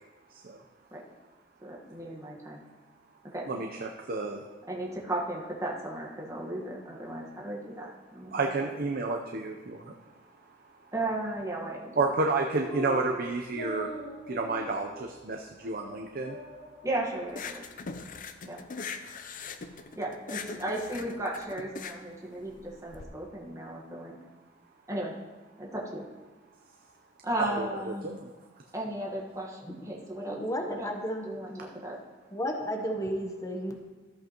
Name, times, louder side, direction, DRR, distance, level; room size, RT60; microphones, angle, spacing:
voice 1, 1.6-2.6 3.3-3.4 4.7-8.4 10.9-12.1 16.8-17.6 18.5-18.6 19.9-24.2 24.9-25.1 25.6-26.0 27.2-28.1 28.7-30.4 30.7-30.9 31.2-32.0, right 1 dB, 15° right, -3 dB, 1.4 m, -35 dB
voice 2, 3.5-4.4 8.3-9.9 12.0-13.9 14.3-16.4 27.4-28.3, right 3 dB, 50° right, 2 dB, 0.6 m, -30 dB
sound 1, 12.6-13.1 13.5-14.7 15.1-15.2 15.6-15.9 16.2-17.0, equal, 70° left, 2.3 m, -41 dB
sound 2, 17.3-23.0, left 5 dB, 45° left, 0.6 m, -41 dB
voice 3, 30.3-31.6 32.3-33.7, equal, 20° left, 2 dB, 0.9 m, -33 dB
13.5 x 7.9 x 3.0 m, 1.2 s
head